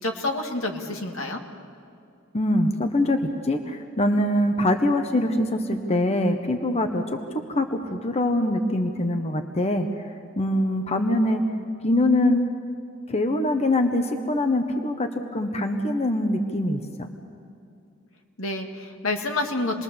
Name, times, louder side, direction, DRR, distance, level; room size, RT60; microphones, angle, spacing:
voice 1, 0.0-1.4 18.4-19.8, left 2 dB, 80° left, 3 dB, 2.2 m, -28 dB
voice 2, 2.3-7.2 7.5-9.9 10.4-11.4 11.8-12.4 13.1-16.8, left 1 dB, 30° left, 6 dB, 1.2 m, -23 dB
27.5 x 21.0 x 7.1 m, 2.5 s
head